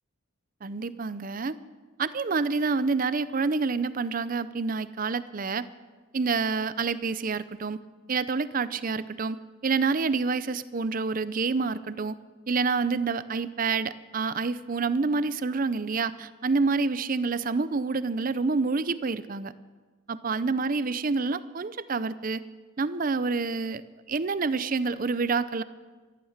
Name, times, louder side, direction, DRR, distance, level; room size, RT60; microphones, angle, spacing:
voice 1, 0.6-1.6 2.0-5.7 6.1-7.8 8.1-9.4 9.6-12.2 12.5-19.5 20.1-22.4 22.8-23.8 24.1-25.6, right 4 dB, 40° right, 15 dB, 0.5 m, -28 dB
14.5 x 13.5 x 7.3 m, 1.3 s
head